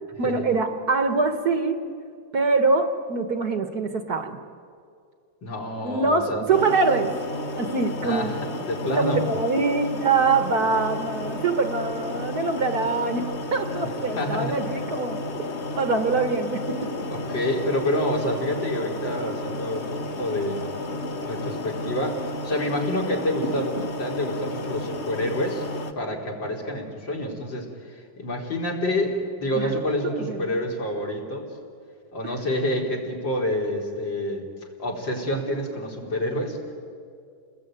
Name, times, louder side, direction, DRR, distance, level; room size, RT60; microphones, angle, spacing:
voice 1, 0.2-1.8 2.3-4.4 5.8-7.1 7.6-8.3 8.9-15.2 15.8-17.1 29.5-29.7 30.0-30.6 32.2-32.3, right 4 dB, 50° right, 7 dB, 1.8 m, -24 dB
voice 2, 5.4-6.5 8.0-8.3 8.7-9.2 14.2-14.7 17.1-20.7 21.3-25.6 26.0-31.5 32.1-34.5 34.8-36.7, left 1 dB, 60° left, -1 dB, 4.4 m, -28 dB
sound 1, 6.5-25.9, left 2 dB, 40° left, 1.2 m, -32 dB
29.5 x 20.5 x 9.1 m, 2.3 s
omnidirectional pair, 2.3 m